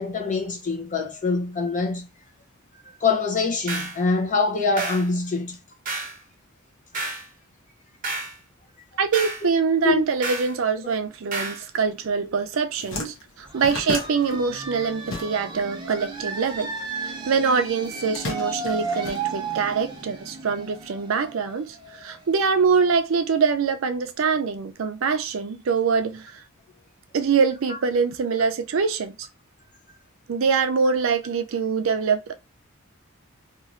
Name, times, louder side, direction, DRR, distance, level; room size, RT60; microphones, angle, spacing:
voice 1, 0.0-2.1 3.0-5.6 9.8-10.0 10.8-10.9 13.0-13.1, left 4 dB, 35° left, 0.6 m, -24 dB
sound 1, 3.7-4.0 4.8-5.1 5.8-6.2 6.9-7.3 8.0-8.4 9.1-9.4 10.2-10.5 11.3-11.6, right 3 dB, 40° right, 0.9 m, -30 dB
voice 2, 9.0-13.1 13.5-16.7 17.0-26.4 27.1-29.3 30.3-32.3, right 5 dB, 65° right, 0.4 m, -24 dB
sound 2, 12.3-12.4 12.6-15.7 16.0-17.2 17.8-19.8, left 3 dB, 70° left, 0.9 m, -35 dB
sound 3, 13.5-22.9, right 4 dB, 20° right, 0.6 m, -34 dB
3.0 x 2.4 x 2.5 m
head